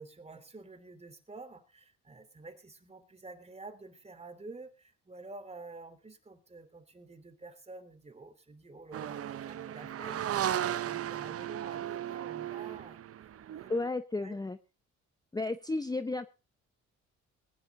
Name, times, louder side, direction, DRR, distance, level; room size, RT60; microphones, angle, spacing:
voice 1, 0.0-13.0 13.5-13.7 14.2-14.4, right 3 dB, 20° right, 7 dB, 3.2 m, -49 dB
sound 1, 8.9-13.9, right 11 dB, 50° right, 0.7 m, -36 dB
voice 2, 13.7-14.6 15.3-16.3, left 2 dB, 15° left, 12 dB, 0.7 m, -33 dB
21.0 x 10.0 x 3.8 m, 0.31 s
cardioid pair, 90°, 30 cm